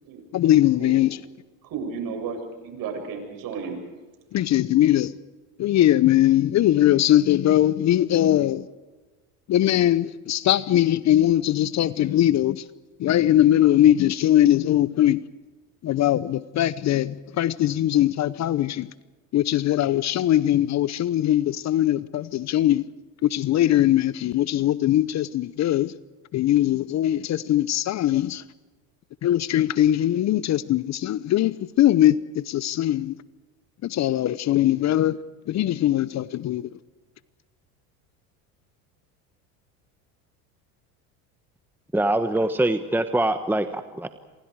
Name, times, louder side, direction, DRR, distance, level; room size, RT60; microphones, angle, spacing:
voice 1, 0.3-1.2 4.3-5.1 5.6-8.7 9.5-12.6 13.0-15.2 15.8-18.9 19.3-22.8 23.2-25.9 26.3-28.4 29.2-33.2 33.8-35.2 35.5-36.7, left 12 dB, 40° left, 0.9 m, -21 dB
voice 2, 1.6-3.8, right 5 dB, 55° right, 7.7 m, -33 dB
voice 3, 41.9-44.1, right 1 dB, 5° right, 1.3 m, -23 dB
28.0 x 26.0 x 4.9 m
supercardioid pair, 95°, 41 cm